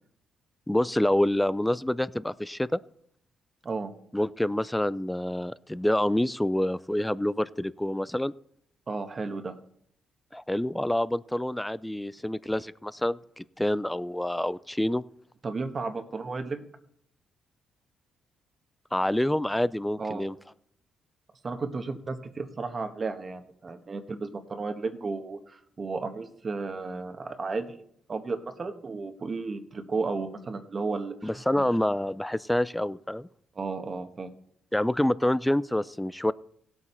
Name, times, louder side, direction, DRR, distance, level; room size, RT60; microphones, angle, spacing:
voice 1, 0.7-2.8 4.1-8.3 10.3-15.0 18.9-20.3 31.2-33.3 34.7-36.3, left 1 dB, 5° left, 18 dB, 0.4 m, -27 dB
voice 2, 8.9-9.5 15.4-16.6 20.0-20.2 21.4-27.8 28.1-31.3 31.6-31.7 33.5-34.3, right 4 dB, 35° right, 6 dB, 1.3 m, -33 dB
17.0 x 8.2 x 4.4 m, 0.67 s
cardioid pair, 90°, 0 cm